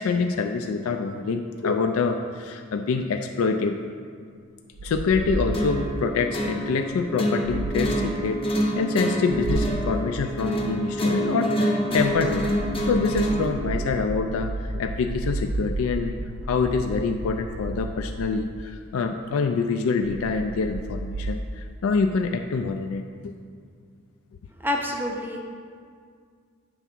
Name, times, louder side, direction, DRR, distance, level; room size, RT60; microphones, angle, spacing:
voice 1, 0.0-3.8 4.8-12.5 12.9-16.1 16.5-23.3, left 4 dB, 70° left, 5 dB, 0.3 m, -26 dB
sound 1, 4.7-6.0 7.4-8.0 9.3-10.0 11.9-18.6 20.0-21.3, right 2 dB, 85° right, 0.5 m, -32 dB
sound 2, 5.5-13.5, equal, 25° left, 0.8 m, -27 dB
voice 2, 24.6-25.4, left 1 dB, 10° right, 1 dB, 0.5 m, -27 dB
7.9 x 3.6 x 5.9 m, 2.1 s
head